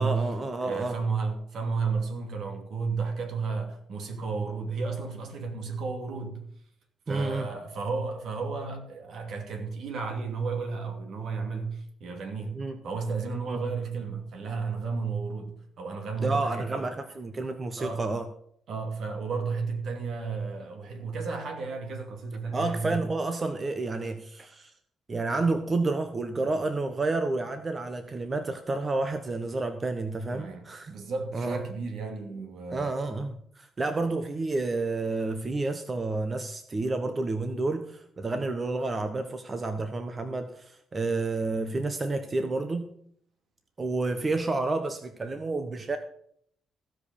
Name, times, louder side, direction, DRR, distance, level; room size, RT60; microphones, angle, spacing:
voice 1, 0.0-1.0 7.1-7.5 12.5-12.8 13.5-13.6 16.2-18.2 22.5-24.7 25.1-30.9 31.3-31.6 32.7-42.9 43.8-46.0, right 3 dB, 30° right, 1.0 m, -30 dB
voice 2, 0.6-6.4 7.1-16.8 17.8-18.1 18.7-23.0 30.3-32.9, right 4 dB, 65° right, 2.6 m, -33 dB
15.5 x 5.2 x 6.9 m
cardioid pair, 90°, 0 cm